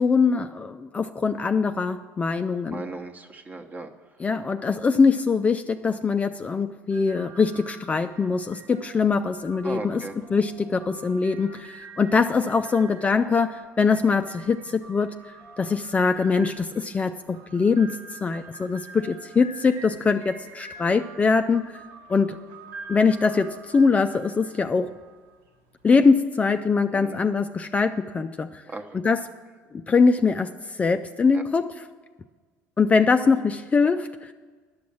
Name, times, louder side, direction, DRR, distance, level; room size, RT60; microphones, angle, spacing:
voice 1, 0.0-2.8 4.2-10.0 10.3-15.2 15.6-21.8 22.1-22.4 22.9-25.0 25.8-28.6 28.9-29.2 29.7-31.7 32.8-34.3, left 4 dB, 20° left, 8 dB, 0.4 m, -22 dB
voice 2, 2.7-3.9 9.6-10.1 26.9-27.2 28.7-29.0 31.3-31.4, right 2 dB, 25° right, 5 dB, 1.0 m, -36 dB
sound 1, 6.9-26.0, right 3 dB, 90° right, 1.7 m, -47 dB
11.0 x 6.2 x 8.6 m, 1.4 s
supercardioid pair, 110°, 6 cm